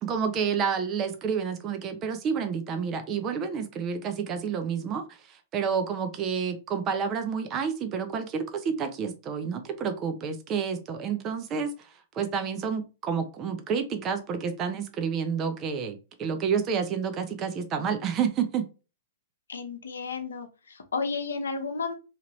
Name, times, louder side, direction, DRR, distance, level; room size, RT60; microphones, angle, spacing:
voice 1, 0.0-18.7, right 6 dB, 30° right, 0.6 m, -29 dB
voice 2, 19.5-21.9, left 4 dB, 85° left, 0.7 m, -32 dB
2.9 x 2.6 x 3.0 m
hypercardioid pair, 120°, 0 cm